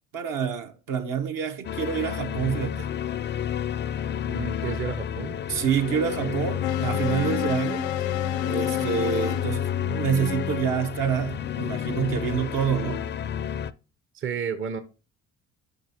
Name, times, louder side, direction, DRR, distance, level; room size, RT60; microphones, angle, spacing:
voice 1, 0.1-2.9 5.5-7.9 8.4-9.7 9.9-13.0, right 7 dB, 65° right, 1.1 m, -27 dB
sound 1, 1.6-13.7, left 9 dB, 30° left, 0.4 m, -30 dB
voice 2, 4.3-5.4 6.2-6.4 9.8-10.0 14.1-14.8, right 7 dB, 35° right, 0.7 m, -32 dB
sound 2, 6.6-9.5, left 12 dB, 75° left, 0.7 m, -30 dB
7.8 x 5.7 x 2.8 m
hypercardioid pair, 60°, 35 cm